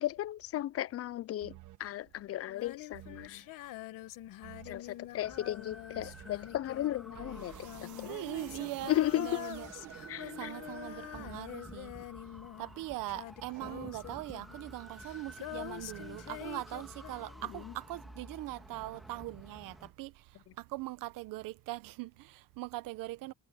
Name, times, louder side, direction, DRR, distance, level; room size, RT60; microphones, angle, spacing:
voice 1, 0.0-1.5 1.8-3.4 4.6-8.1 8.9-9.4 10.1-10.5 17.5-17.7, left 13 dB, 45° left, 0.4 m, -35 dB
sound 1, 1.4-2.0 2.9-3.5 4.4-5.0 5.9-6.5 7.1-11.5, right 14 dB, 65° right, 1.2 m, -52 dB
Female singing, 2.5-17.8 19.4-19.5, left 16 dB, 75° left, 1.2 m, -46 dB
sound 2, 5.2-19.9, equal, ahead, 2.9 m, -51 dB
voice 2, 8.0-9.7 10.3-11.9 12.6-20.2 20.6-23.3, right 18 dB, 80° right, 1.0 m, -41 dB
cardioid pair, 120°, 32 cm